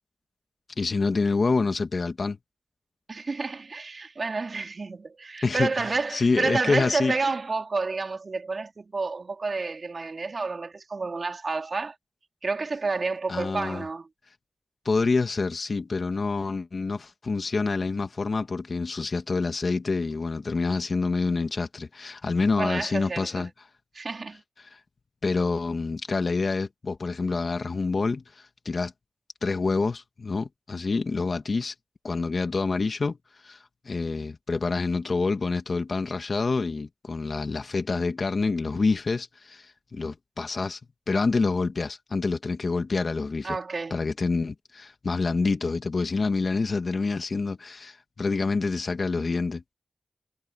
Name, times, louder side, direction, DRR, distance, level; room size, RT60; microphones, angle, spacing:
voice 1, 0.8-2.4 5.4-7.2 13.3-13.8 14.9-23.5 24.6-24.8 25.2-28.9 29.4-31.7 32.0-33.2 33.4-40.8 41.1-43.6 43.9-49.6, left 4 dB, 60° left, 1.9 m, -27 dB
voice 2, 3.1-11.9 12.4-14.1 22.6-23.5 23.9-24.4 43.4-44.0, right 4 dB, 55° right, 2.8 m, -30 dB
cardioid pair, 50°, 0 cm